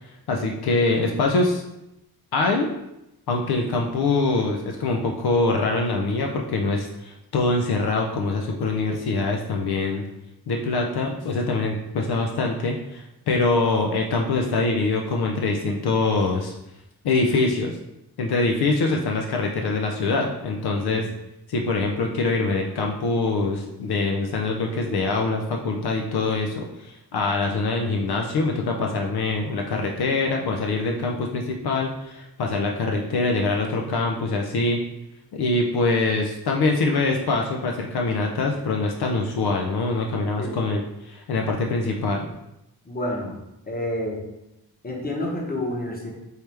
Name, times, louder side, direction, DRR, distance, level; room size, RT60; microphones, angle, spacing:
voice 1, 0.3-1.6 2.3-2.7 3.3-10.0 10.5-16.5 17.0-17.8 18.2-21.0 21.5-34.8 35.3-42.3, left 3 dB, 70° left, 1 dB, 0.6 m, -24 dB
voice 2, 42.8-43.3 43.7-44.2 44.8-46.1, left 1 dB, 25° left, -1 dB, 1.0 m, -29 dB
4.6 x 3.3 x 3.3 m, 0.89 s
wide cardioid pair, 105°, 39 cm